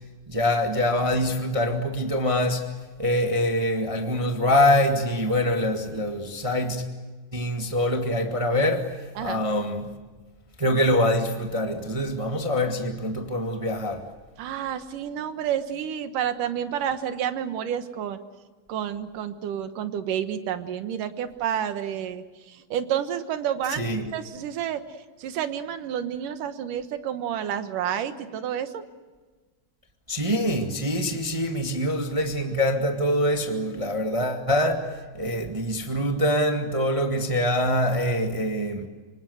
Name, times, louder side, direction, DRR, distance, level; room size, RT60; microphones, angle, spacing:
voice 1, 0.3-2.7 3.0-6.8 7.3-9.9 10.6-14.1 23.7-24.1 30.1-38.9, left 1 dB, 15° right, 1.0 m, -24 dB
voice 2, 14.4-18.2 18.7-24.8 25.2-28.8, right 9 dB, 75° right, 2.9 m, -30 dB
26.0 x 25.5 x 8.0 m
omnidirectional pair, 3.9 m